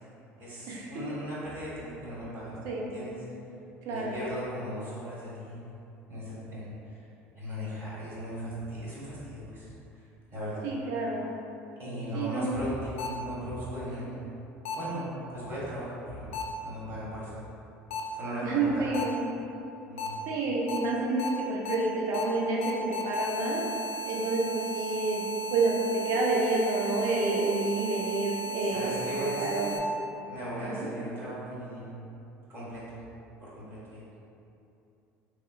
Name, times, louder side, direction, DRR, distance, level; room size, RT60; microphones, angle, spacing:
voice 1, 0.4-2.6 2.9-3.1 3.9-5.6 6.1-7.0 7.4-9.7 10.3-10.6 11.8-14.1 14.8-16.4 16.6-17.3 18.1-18.9 19.9-20.2 28.7-29.6 30.3-31.9 32.5-32.8 33.4-34.0, equal, 35° right, -9 dB, 1.5 m, -37 dB
voice 2, 3.8-4.2 10.6-11.3 12.1-12.6 18.4-19.3 20.3-23.6 24.1-29.8 30.6-30.9, right 2 dB, 60° right, -2 dB, 0.6 m, -29 dB
sound 1, 13.0-13.1 14.6-14.7 16.3-16.4 17.9-18.0 18.9-19.0 20.0-20.1 20.7-20.8 21.2-21.3 21.6-21.7 22.1-22.2 22.6-29.8, equal, 90° left, 0.4 m, -35 dB
3.0 x 3.0 x 2.3 m, 2.8 s
hypercardioid pair, 75°, 7 cm